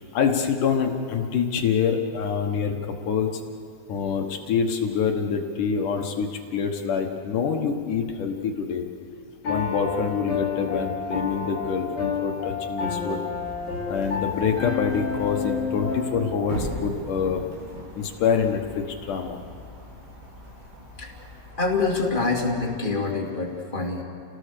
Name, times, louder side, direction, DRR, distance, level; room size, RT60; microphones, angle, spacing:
voice 1, 0.0-2.7 3.1-3.4 3.9-8.9 9.5-13.2 13.9-17.4 18.0-19.4, left 6 dB, 65° left, 3 dB, 2.2 m, -26 dB
Piano, 9.4-16.3, left 5 dB, 45° left, 5.8 m, -29 dB
sound 1, 13.3-22.8, right 1 dB, 70° right, 6.1 m, -40 dB
voice 2, 21.6-24.0, left 3 dB, 30° left, -2 dB, 1.0 m, -25 dB
30.0 x 18.5 x 6.8 m, 2.5 s
omnidirectional pair, 5.1 m